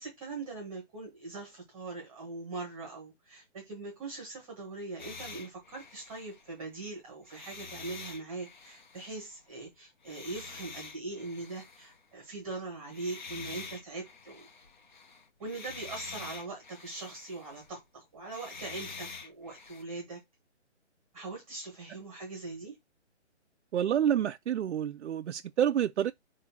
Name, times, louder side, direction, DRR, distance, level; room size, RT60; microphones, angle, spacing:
voice 1, 0.0-14.5 15.4-20.2 21.1-22.8, right 3 dB, 5° right, 1.0 m, -41 dB
sound 1, 5.0-6.8 7.3-9.4 10.0-12.0 12.9-17.8 18.2-19.8, left 4 dB, 40° left, 0.9 m, -47 dB
voice 2, 23.7-26.1, right 10 dB, 75° right, 0.5 m, -28 dB
4.9 x 3.8 x 5.8 m
hypercardioid pair, 170°, 36 cm